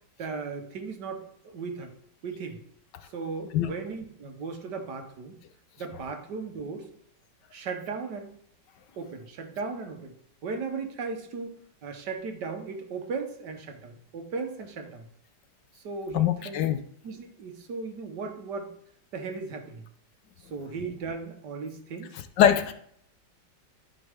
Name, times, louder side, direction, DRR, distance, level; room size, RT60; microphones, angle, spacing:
voice 1, 0.2-1.9 2.2-2.6 3.1-5.4 5.8-6.9 7.5-8.3 9.0-10.1 10.4-15.1 15.7-16.7 17.0-18.7 19.1-19.8 20.5-22.1, right 4 dB, 70° right, 5 dB, 1.7 m, -36 dB
voice 2, 16.1-16.8 22.1-22.7, left 10 dB, 75° left, 9 dB, 1.3 m, -23 dB
13.5 x 5.4 x 3.5 m, 0.67 s
omnidirectional pair, 2.0 m